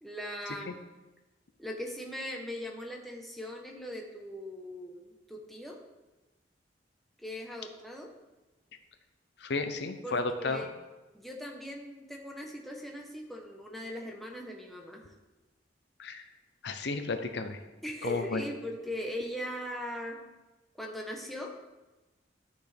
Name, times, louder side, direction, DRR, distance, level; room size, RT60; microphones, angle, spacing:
voice 1, 0.0-0.7 1.6-5.8 7.2-8.1 10.0-10.7 11.1-15.1 17.8-20.2 20.8-21.5, left 1 dB, ahead, 0 dB, 1.0 m, -39 dB
voice 2, 9.4-10.7 16.0-16.2 16.6-17.6 18.0-18.4, left 3 dB, 65° left, 8 dB, 0.6 m, -33 dB
12.0 x 6.1 x 3.4 m, 1.1 s
head